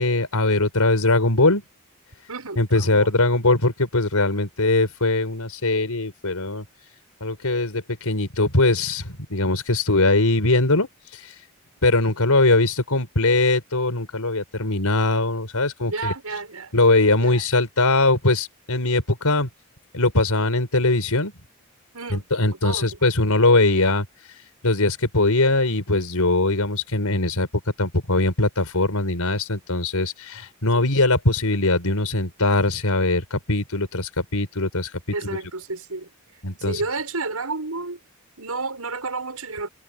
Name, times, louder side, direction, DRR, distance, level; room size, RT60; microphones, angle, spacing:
voice 1, 0.0-1.6 2.6-6.6 7.2-10.9 11.8-16.1 16.7-19.5 19.9-21.3 22.1-24.0 24.6-27.5 27.8-34.9 35.2-35.4 36.4-36.8, left 2 dB, 90° left, 4.8 m, -21 dB
voice 2, 2.3-3.1 15.9-16.7 17.2-17.4 21.9-23.0 35.1-36.4 36.7-38.0 38.4-39.7, right 3 dB, 85° right, 6.6 m, -31 dB
head